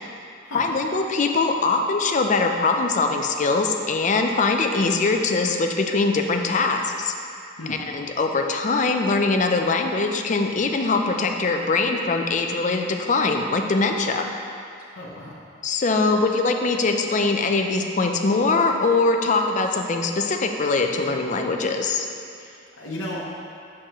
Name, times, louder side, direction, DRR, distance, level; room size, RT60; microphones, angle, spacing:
voice 1, 0.5-7.1 7.9-14.3 15.6-22.1, left 3 dB, 40° left, 4 dB, 0.4 m, -22 dB
voice 2, 14.9-15.3 22.4-23.2, left 1 dB, 80° left, -6 dB, 0.9 m, -34 dB
7.2 x 6.7 x 3.0 m, 2.4 s
head